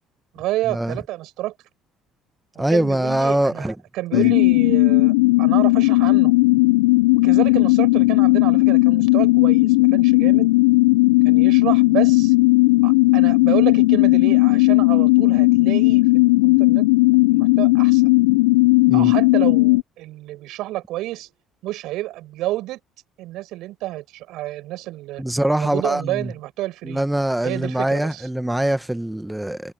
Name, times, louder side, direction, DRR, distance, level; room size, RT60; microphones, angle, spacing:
voice 1, 0.3-1.5 2.5-6.3 7.2-10.5 11.2-12.3 12.8-16.8 17.3-18.1 18.9-21.3 21.6-22.8 23.2-25.2 25.5-27.0 27.4-28.2, right 16 dB, 70° right, 8.0 m, -29 dB
voice 2, 2.6-3.7 4.1-4.3 18.9-19.1 25.2-26.3 26.8-29.7, right 1 dB, 5° right, 1.4 m, -23 dB
sound 1, 4.1-19.8, left 23 dB, 85° left, 0.3 m, -16 dB
hypercardioid pair, 65°, 0 cm